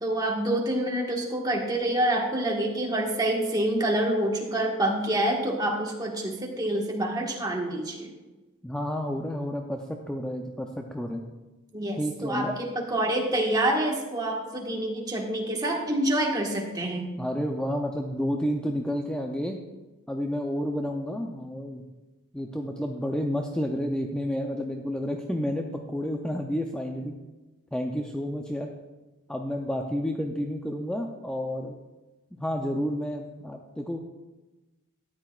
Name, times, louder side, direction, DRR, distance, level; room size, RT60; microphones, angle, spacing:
voice 1, 0.0-8.1 11.7-17.1, right 1 dB, 20° right, 0 dB, 1.4 m, -27 dB
voice 2, 8.6-11.2 12.0-12.5 17.2-19.6 20.1-21.8 22.3-27.2 27.7-28.7 29.3-31.7 32.3-34.0, equal, 5° left, 2 dB, 0.5 m, -30 dB
13.5 x 9.8 x 2.4 m, 1.2 s
head